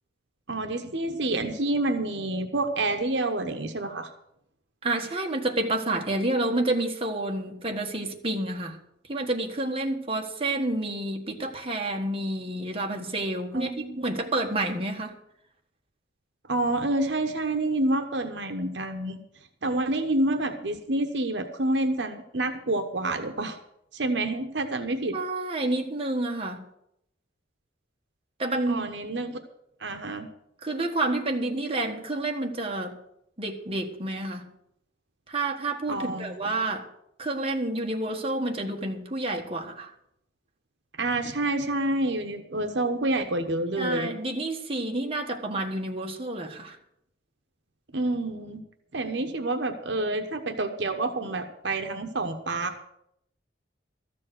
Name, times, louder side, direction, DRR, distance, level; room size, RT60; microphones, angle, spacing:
voice 1, 0.5-4.1 13.5-14.3 16.5-19.2 19.6-23.6 23.9-25.2 28.7-29.4 29.8-30.3 35.9-36.6 41.0-44.1 47.9-48.6 48.9-52.8, right 2 dB, 65° right, 7 dB, 1.1 m, -28 dB
voice 2, 4.8-8.8 9.1-15.2 25.1-26.6 28.4-28.9 30.6-33.0 33.4-34.4 35.3-36.9 37.2-39.9 43.8-46.8, right 2 dB, 30° right, 2 dB, 1.5 m, -29 dB
13.5 x 7.5 x 7.8 m, 0.76 s
head